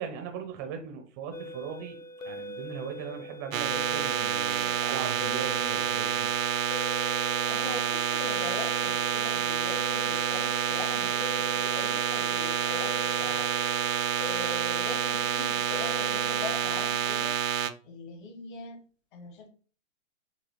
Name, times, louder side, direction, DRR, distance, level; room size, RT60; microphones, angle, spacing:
voice 1, 0.0-2.0 2.2-6.3, right 7 dB, 15° right, 5 dB, 0.5 m, -39 dB
sound 1, 1.3-16.6, equal, 85° left, 0.6 m, -41 dB
sound 2, 3.5-17.7, right 8 dB, 90° right, 0.6 m, -28 dB
voice 2, 7.4-17.4 17.8-18.8 19.1-19.5, left 4 dB, 40° left, 5 dB, 1.2 m, -42 dB
5.1 x 2.9 x 3.0 m, 0.40 s
hypercardioid pair, 130°, 39 cm